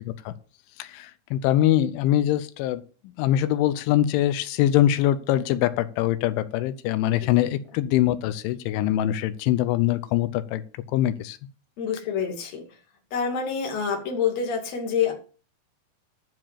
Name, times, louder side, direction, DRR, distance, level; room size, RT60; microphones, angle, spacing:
voice 1, 0.8-2.8 3.2-10.6 10.9-11.4, left 12 dB, 90° left, 13 dB, 3.2 m, -23 dB
voice 2, 11.8-12.6 13.1-15.1, left 6 dB, 45° left, 1 dB, 3.0 m, -27 dB
12.0 x 4.9 x 7.5 m, 0.38 s
omnidirectional pair, 5.3 m